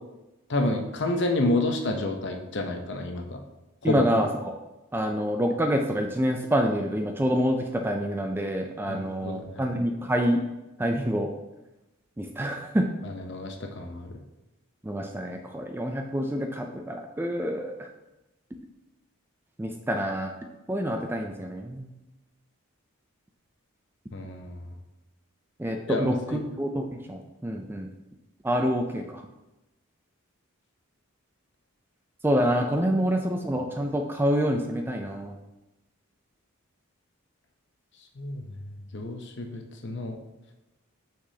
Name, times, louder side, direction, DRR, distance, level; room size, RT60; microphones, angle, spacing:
voice 1, 0.5-3.4 3.8-4.0 8.9-9.6 13.0-14.2 24.1-24.7 25.9-26.5 38.2-38.5 38.9-40.2, left 2 dB, 55° left, 4 dB, 0.7 m, -29 dB
voice 2, 3.8-4.5 4.9-10.4 10.8-11.3 12.2-12.9 14.8-17.9 19.6-20.3 20.7-21.9 25.6-27.9 28.4-29.2 32.2-35.4, equal, 10° right, 4 dB, 0.3 m, -27 dB
6.1 x 6.0 x 2.8 m, 1.0 s
head